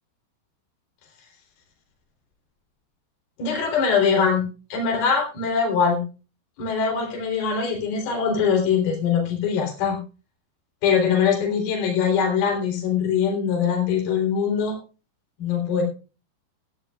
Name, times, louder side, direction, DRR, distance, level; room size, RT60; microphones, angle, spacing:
voice 1, 3.4-4.4 4.7-6.0 6.6-10.0 10.8-14.8 15.4-15.8, left 6 dB, 50° left, 0 dB, 5.3 m, -22 dB
16.5 x 14.0 x 2.4 m, 0.34 s
omnidirectional pair, 5.8 m